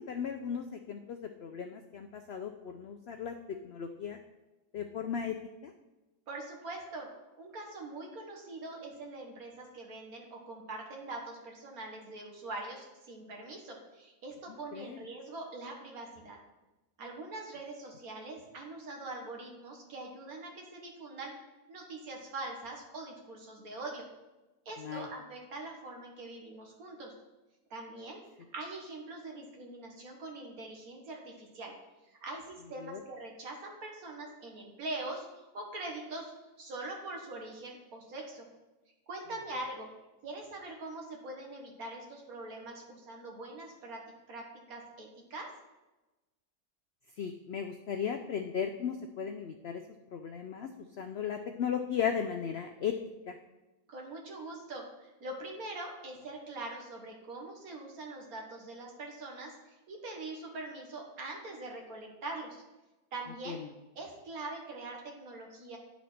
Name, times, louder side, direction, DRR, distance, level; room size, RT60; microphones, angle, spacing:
voice 1, 0.0-3.3 3.6-4.2 4.7-5.3 5.6-5.7 14.7-15.0 24.8-25.1 32.8-33.0 47.2-49.8 50.1-50.7 51.0-52.9 53.3-53.4 63.5-63.7, left 7 dB, 85° left, 6 dB, 0.5 m, -36 dB
voice 2, 6.3-7.1 7.4-16.4 17.0-21.3 21.7-24.1 24.7-27.1 27.7-28.2 28.5-31.7 32.2-36.3 36.6-38.5 39.1-39.9 40.2-45.5 53.9-62.6 63.1-63.6 64.0-65.8, right 2 dB, 65° right, 1 dB, 1.8 m, -43 dB
10.5 x 4.4 x 4.2 m, 1.1 s
omnidirectional pair, 1.7 m